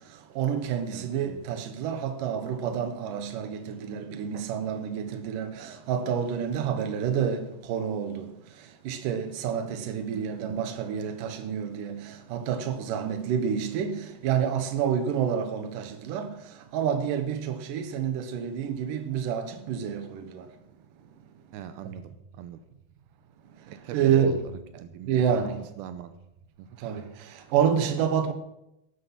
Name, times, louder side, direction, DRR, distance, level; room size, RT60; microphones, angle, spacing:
voice 1, 0.4-8.3 8.8-16.4 16.7-20.5 23.9-24.4 25.1-25.6 26.8-27.1 27.5-28.3, right 8 dB, 70° right, 2.6 m, -28 dB
voice 2, 21.5-22.0 22.3-22.6 23.7-24.4 24.7-25.2 25.8-26.1 26.6-26.7, right 10 dB, 85° right, 2.6 m, -40 dB
12.5 x 11.5 x 5.8 m
omnidirectional pair, 4.3 m